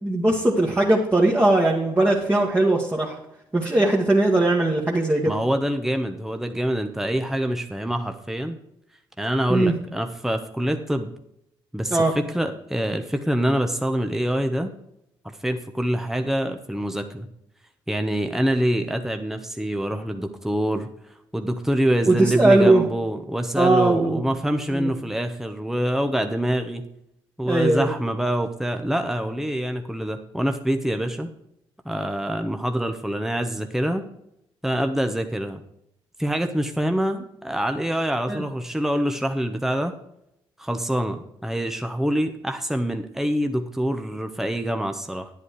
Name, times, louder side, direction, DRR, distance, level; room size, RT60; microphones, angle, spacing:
voice 1, 0.0-3.2 3.5-5.3 9.5-9.7 11.9-12.1 22.1-22.9 23.6-24.2 24.7-24.9 27.5-27.9 38.3-38.4, right 2 dB, 20° right, -3 dB, 1.9 m, -19 dB
voice 2, 5.3-8.6 9.2-11.1 11.7-14.7 15.2-17.3 17.9-20.9 21.3-26.8 27.4-31.3 31.8-34.1 34.6-35.6 36.2-39.9 40.6-45.3, equal, 5° right, 6 dB, 1.1 m, -25 dB
9.8 x 8.4 x 4.7 m, 0.78 s
supercardioid pair, 70°, 10 cm